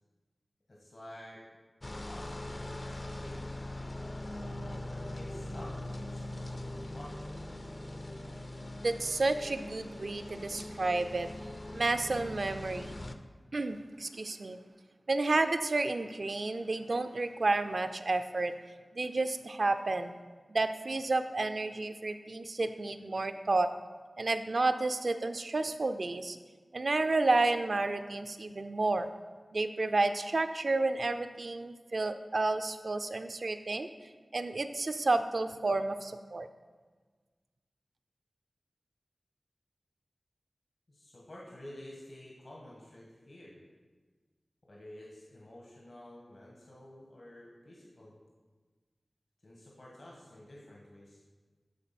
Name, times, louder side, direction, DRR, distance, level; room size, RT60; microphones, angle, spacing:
voice 1, 0.7-1.4 2.0-3.7 4.9-6.6 6.9-7.5 40.9-43.6 44.7-48.2 49.4-51.2, left 1 dB, 65° left, -4 dB, 1.6 m, -50 dB
sound 1, 1.8-13.2, left 1 dB, 40° left, 0.6 m, -41 dB
voice 2, 8.8-11.3 11.7-12.9 13.5-14.6 15.1-18.5 18.9-20.1 20.5-23.7 24.2-26.4 26.7-29.1 29.5-33.9 34.3-36.5, right 2 dB, 65° right, 9 dB, 0.5 m, -31 dB
11.0 x 4.1 x 5.9 m, 1.4 s
wide cardioid pair, 50°, 0 cm